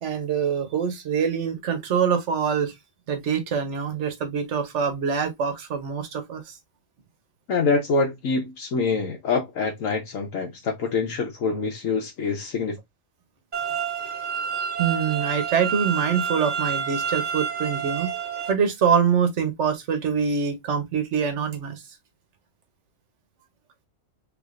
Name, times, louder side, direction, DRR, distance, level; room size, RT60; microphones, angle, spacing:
voice 1, 0.0-2.7 3.1-6.6 14.8-18.1 18.5-21.8, right 7 dB, 65° right, 1.2 m, -24 dB
voice 2, 7.5-12.8, left 4 dB, 85° left, 1.3 m, -25 dB
sound 1, 13.5-18.5, right 7 dB, 35° right, 0.9 m, -29 dB
3.4 x 3.4 x 2.4 m
omnidirectional pair, 1.3 m